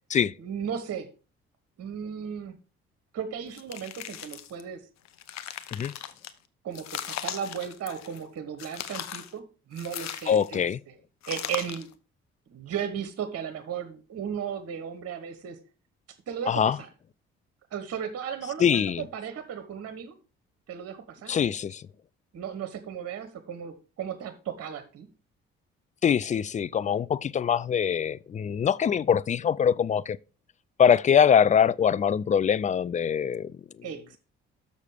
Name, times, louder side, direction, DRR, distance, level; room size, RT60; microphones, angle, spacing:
voice 1, 0.4-1.1 1.8-2.5 3.1-4.8 6.6-10.9 11.3-11.9 12.5-15.6 16.3-16.9 17.7-20.2 20.7-21.4 22.3-25.1 33.8-34.2, right 8 dB, 50° right, 1.2 m, -35 dB
sound 1, 3.5-4.6 5.0-6.3 6.7-8.2 8.6-9.3 9.8-10.6 11.2-11.9, left 11 dB, 60° left, 0.8 m, -38 dB
voice 2, 10.3-10.8 16.5-16.8 18.6-19.0 21.3-21.8 26.0-30.2 30.8-33.5, left 8 dB, 25° left, 0.3 m, -23 dB
6.7 x 6.5 x 4.9 m
hypercardioid pair, 50°, 31 cm